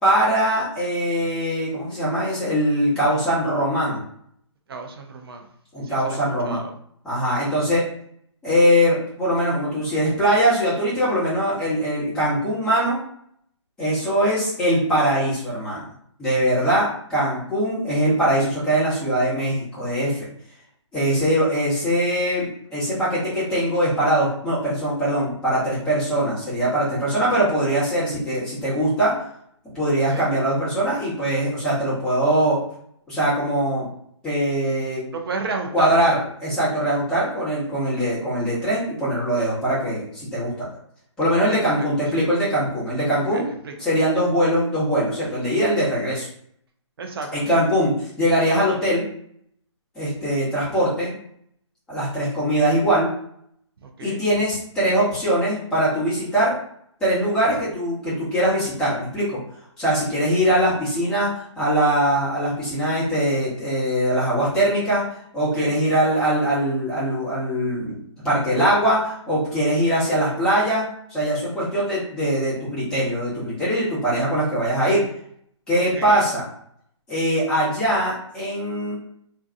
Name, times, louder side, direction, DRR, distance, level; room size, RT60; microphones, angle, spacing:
voice 1, 0.0-4.0 5.7-6.6 7.0-7.8 8.4-13.0 13.8-15.8 16.2-20.3 20.9-29.1 29.7-32.6 33.1-33.9 34.2-35.0 35.7-40.7 41.2-43.4 43.8-46.3 47.3-49.1 49.9-51.1 51.9-53.1 54.0-56.5 57.0-59.4 59.8-65.0 65.3-68.0 68.2-70.8 71.1-75.0 75.7-76.5 77.1-78.9, right 1 dB, 5° left, -11 dB, 0.9 m, -22 dB
voice 2, 4.7-5.5 5.8-6.7 30.1-30.3 35.1-36.2 41.3-41.9 43.2-43.7 47.0-47.7 53.8-54.2 65.5-65.8 75.8-76.3, right 4 dB, 50° right, 4 dB, 0.6 m, -33 dB
2.6 x 2.2 x 2.5 m, 0.67 s
hypercardioid pair, 155°, 16 cm